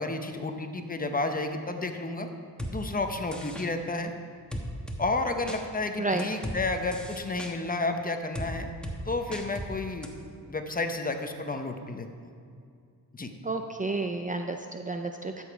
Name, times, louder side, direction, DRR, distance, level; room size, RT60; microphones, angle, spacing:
voice 1, 0.0-2.3 2.7-4.1 5.0-8.7 9.1-10.1 10.5-12.1 13.1-13.3, left 2 dB, 25° left, 6 dB, 0.9 m, -31 dB
sound 1, 2.6-2.7 3.3-3.7 4.5-5.0 5.5-5.6 6.2-6.6 6.9-7.5 8.4-8.5 8.8-9.0 9.3-9.7 10.0-10.1, equal, ahead, 1.2 m, -36 dB
voice 2, 13.4-15.4, right 3 dB, 20° right, 5 dB, 0.5 m, -31 dB
13.0 x 7.2 x 4.7 m, 2.3 s
cardioid pair, 90°, 37 cm